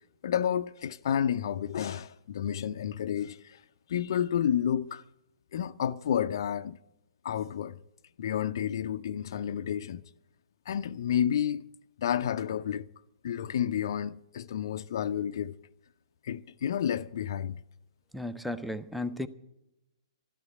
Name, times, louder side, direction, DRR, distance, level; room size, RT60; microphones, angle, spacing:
voice 1, 0.2-3.6 3.9-5.0 5.5-6.8 7.2-7.8 8.2-10.0 10.7-11.6 12.0-12.9 13.2-15.6 16.2-17.6, left 9 dB, 50° left, 0.5 m, -30 dB
voice 2, 18.1-19.3, left 1 dB, ahead, 0.6 m, -34 dB
12.5 x 12.5 x 7.0 m
figure-of-eight pair, 120°, 3 cm